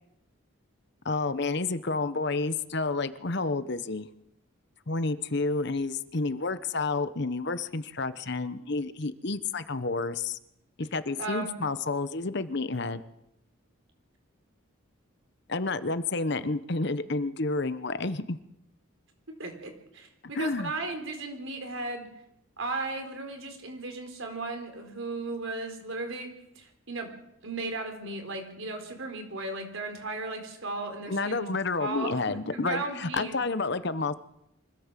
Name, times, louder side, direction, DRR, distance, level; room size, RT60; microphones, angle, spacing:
voice 1, 1.0-4.1 4.9-10.4 10.8-13.0 15.5-18.4 20.3-20.7 31.1-34.1, left 3 dB, 50° left, 13 dB, 0.9 m, -30 dB
voice 2, 11.2-11.6 19.4-22.1 22.6-26.3 26.6-27.1 27.4-31.5 31.8-33.4, right 2 dB, 65° right, 5 dB, 4.3 m, -36 dB
24.5 x 16.0 x 7.5 m, 0.82 s
head